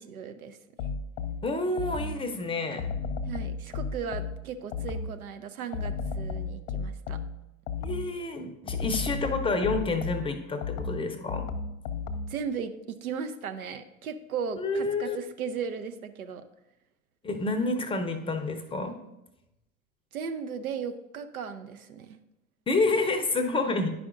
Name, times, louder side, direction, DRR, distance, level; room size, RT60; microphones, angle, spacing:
voice 1, 0.1-0.6 3.2-7.2 12.3-16.4 20.1-22.2, right 6 dB, 80° right, 9 dB, 0.6 m, -36 dB
sound 1, 0.8-2.3 2.8-5.3 5.7-8.2 8.7-12.5, left 5 dB, 60° left, 0.6 m, -34 dB
voice 2, 1.4-2.9 7.8-11.5 14.6-15.2 17.2-19.0 22.7-23.9, left 3 dB, 15° left, 6 dB, 0.6 m, -29 dB
10.5 x 5.0 x 2.5 m, 0.93 s
figure-of-eight pair, 80°, 43 cm